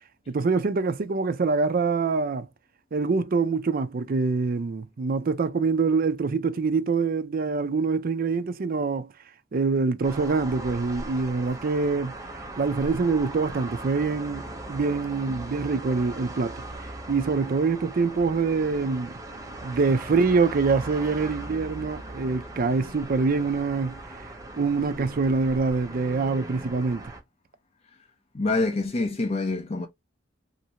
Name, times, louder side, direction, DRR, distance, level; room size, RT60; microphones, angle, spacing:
voice 1, 0.3-2.5 2.9-9.1 9.5-12.2 12.6-14.4 14.7-16.6 17.1-19.2 19.6-24.0 24.6-27.1, right 4 dB, 50° right, 0.4 m, -25 dB
sound 1, 10.0-27.2, right 2 dB, 20° right, 0.8 m, -39 dB
voice 2, 28.3-29.9, left 3 dB, 35° left, 0.5 m, -26 dB
3.1 x 2.6 x 2.8 m
head